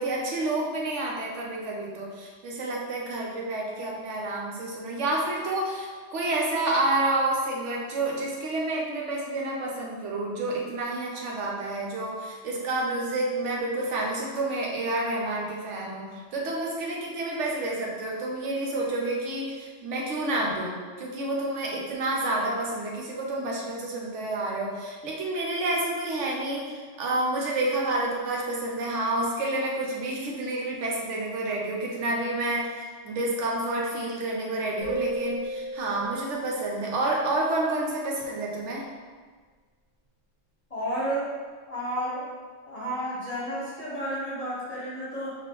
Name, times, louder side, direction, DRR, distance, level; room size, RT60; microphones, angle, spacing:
voice 1, 0.0-16.1 16.3-38.8, right 2 dB, 85° right, -2 dB, 1.1 m, -29 dB
sound 1, 34.8-37.4, right 1 dB, 25° right, 1.5 m, -36 dB
voice 2, 40.7-41.3 41.7-42.3 42.7-45.3, right 1 dB, 35° left, -9 dB, 1.0 m, -31 dB
5.0 x 2.6 x 3.0 m, 1.5 s
omnidirectional pair, 1.2 m